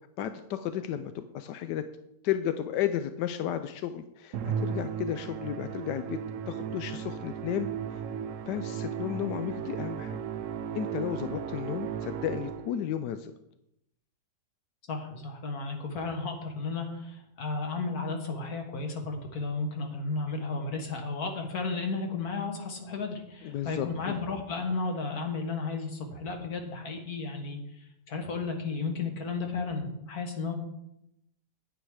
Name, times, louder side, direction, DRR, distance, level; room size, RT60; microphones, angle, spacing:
voice 1, 0.2-1.8 2.2-4.4 4.6-6.2 6.5-8.0 8.5-10.2 10.7-13.3 23.4-24.2, left 10 dB, 90° left, 9 dB, 1.2 m, -33 dB
Musical instrument, 4.3-12.9, right 8 dB, 65° right, 0.8 m, -35 dB
voice 2, 14.9-30.5, left 4 dB, 65° left, 4 dB, 2.0 m, -33 dB
9.5 x 9.2 x 4.8 m, 0.83 s
omnidirectional pair, 1.8 m